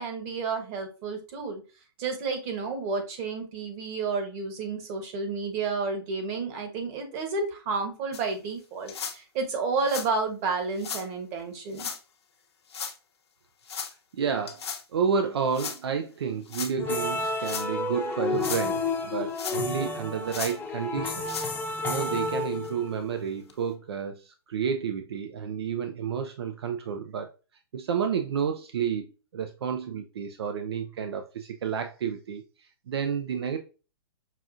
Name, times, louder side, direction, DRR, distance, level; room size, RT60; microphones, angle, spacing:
voice 1, 0.0-1.6 2.0-11.9, right 4 dB, 40° right, 1.2 m, -31 dB
sound 1, 8.1-8.2 8.9-9.2 9.8-10.1 10.8-11.0 11.7-12.0 12.7-13.0 13.7-13.9 14.5-14.8 15.5-15.8 16.5-16.7 17.3-17.7 18.2-18.7 19.3-19.8 20.3-20.6 21.2-21.5 22.1-22.2 22.6-22.7 23.5-23.6, left 6 dB, 80° left, 0.8 m, -35 dB
voice 2, 14.1-21.3 21.8-27.3 27.7-32.4 32.9-33.6, right 7 dB, 75° right, 0.5 m, -30 dB
sound 2, 16.8-23.1, left 3 dB, 15° left, 0.7 m, -31 dB
5.7 x 2.4 x 2.5 m
hypercardioid pair, 130°, 13 cm